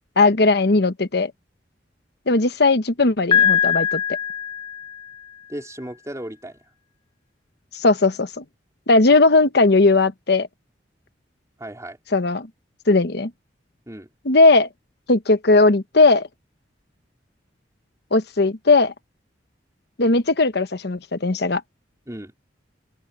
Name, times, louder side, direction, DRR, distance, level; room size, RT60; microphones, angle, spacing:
voice 1, 0.2-1.3 2.3-4.0 7.7-8.4 8.9-10.5 12.1-12.5 12.9-13.3 14.2-14.7 15.1-16.3 18.1-18.9 20.0-21.6, left 3 dB, 60° left, 1.1 m, -17 dB
Piano, 3.3-5.2, left 8 dB, 25° left, 0.6 m, -21 dB
voice 2, 5.5-6.6 11.6-12.0 13.9-14.1 22.1-22.3, right 1 dB, 15° right, 4.6 m, -35 dB
open air
head